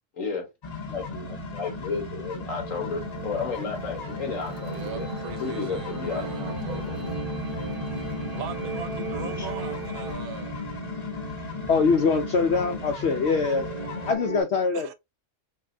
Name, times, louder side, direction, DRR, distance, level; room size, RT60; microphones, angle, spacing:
voice 1, 0.2-0.5 0.9-5.1 5.4-7.0 9.2-9.5, left 4 dB, 55° left, 1.9 m, -33 dB
sound 1, 0.6-14.1, left 3 dB, 35° left, 0.8 m, -35 dB
sound 2, 2.6-10.1, right 4 dB, 90° right, 1.7 m, -38 dB
sound 3, 3.8-14.4, right 6 dB, 35° right, 0.6 m, -41 dB
voice 2, 4.7-6.0 6.4-7.0 8.3-10.5 14.8-14.9, right 7 dB, 65° right, 1.1 m, -39 dB
voice 3, 11.7-13.7 14.1-14.9, left 4 dB, 70° left, 0.6 m, -23 dB
5.8 x 2.1 x 2.6 m
omnidirectional pair, 1.7 m